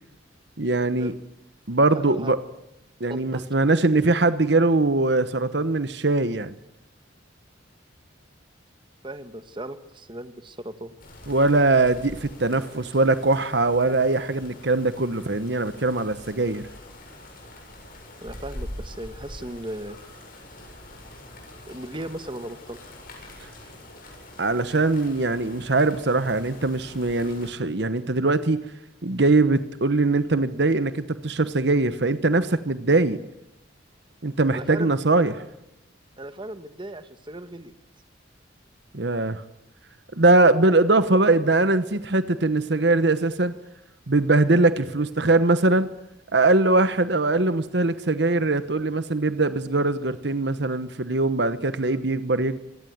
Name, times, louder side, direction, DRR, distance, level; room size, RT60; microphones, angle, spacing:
voice 1, 0.6-1.1 1.7-2.4 3.0-6.5 11.3-16.7 23.4-23.5 24.4-28.7 29.0-33.2 34.2-35.4 38.9-39.4 40.1-43.5 44.1-45.9 46.3-52.6, right 2 dB, 60° right, 13 dB, 1.1 m, -21 dB
voice 2, 1.9-2.3 3.1-3.5 9.0-11.0 18.2-20.0 21.7-22.8 34.5-34.9 36.2-37.7, right 1 dB, 25° right, 11 dB, 1.5 m, -37 dB
sound 1, 11.0-27.5, left 1 dB, 50° left, 7.7 m, -44 dB
25.5 x 18.0 x 9.4 m, 0.88 s
head